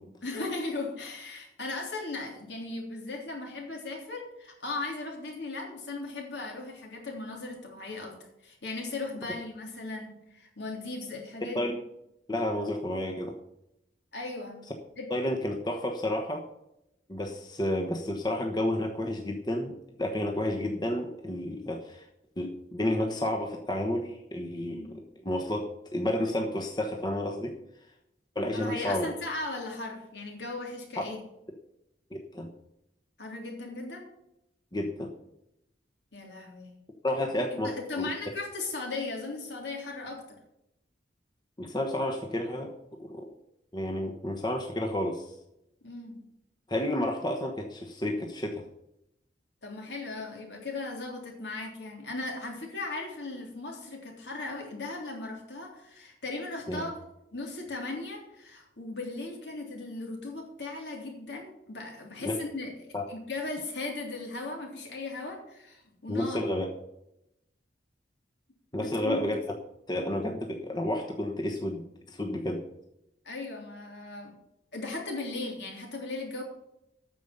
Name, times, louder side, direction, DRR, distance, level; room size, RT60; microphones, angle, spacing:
voice 1, 0.2-8.2 8.4-11.6 14.1-14.6 15.0-15.1 24.6-24.9 28.5-31.2 33.2-34.1 36.1-36.7 37.5-40.4 45.8-46.2 49.6-57.0 57.3-66.4 68.8-69.3 73.2-74.3 74.7-76.4, left 3 dB, 75° left, 0 dB, 3.3 m, -37 dB
voice 2, 12.3-13.3 15.1-16.4 17.1-19.7 20.0-22.0 22.4-27.5 28.3-29.1 32.3-32.5 34.7-35.1 37.0-38.1 41.6-42.7 43.0-43.2 43.7-45.3 46.7-48.6 56.7-56.8 62.2-62.3 62.9-63.0 66.1-66.7 68.7-69.4 69.9-71.8 72.1-72.6, left 1 dB, 25° left, 3 dB, 1.1 m, -31 dB
9.2 x 6.9 x 8.1 m, 0.83 s
head